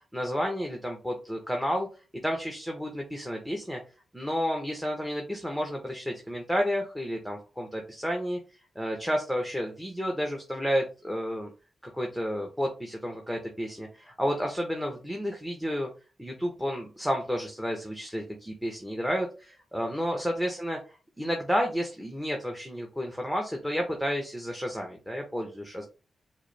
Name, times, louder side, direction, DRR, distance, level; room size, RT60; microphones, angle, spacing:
voice 1, 0.1-1.9 2.2-3.8 4.1-8.4 8.7-11.5 11.9-15.9 16.2-25.8, equal, ahead, 2 dB, 0.9 m, -31 dB
4.7 x 2.1 x 3.2 m, 0.33 s
cardioid pair, 60°, 0 cm